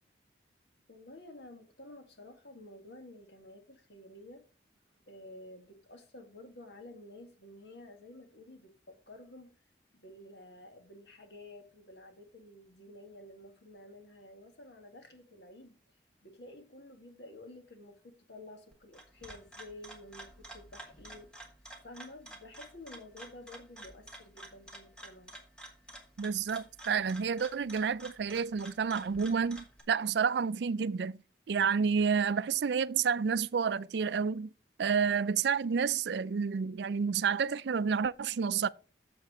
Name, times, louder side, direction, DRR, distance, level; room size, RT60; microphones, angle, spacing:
voice 1, 0.9-4.5 5.1-9.6 9.9-15.8 16.2-21.3 21.8-25.4, left 1 dB, 75° left, 1.9 m, -51 dB
sound 1, 18.9-29.8, right 1 dB, 5° left, 1.7 m, -50 dB
voice 2, 26.2-31.2 31.5-34.5 34.8-38.7, right 6 dB, 75° right, 0.4 m, -30 dB
8.1 x 7.0 x 4.9 m
head